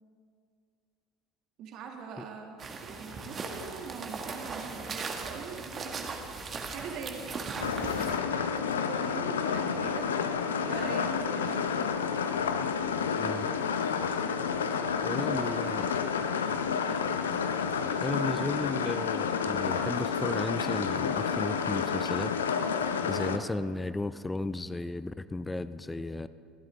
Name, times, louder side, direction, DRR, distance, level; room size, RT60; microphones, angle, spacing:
voice 1, 1.6-6.1 6.7-10.1 10.7-12.0 15.1-15.9, right 5 dB, 50° right, 1 dB, 2.3 m, -43 dB
sound 1, 2.6-8.2, right 4 dB, 30° right, 1.7 m, -38 dB
sound 2, 7.6-23.4, left 6 dB, 75° left, 0.7 m, -30 dB
voice 2, 15.0-15.9 18.0-22.3 23.0-26.3, left 2 dB, 10° left, 14 dB, 0.5 m, -34 dB
27.5 x 12.5 x 3.6 m, 2.2 s
figure-of-eight pair, 70°, 0 cm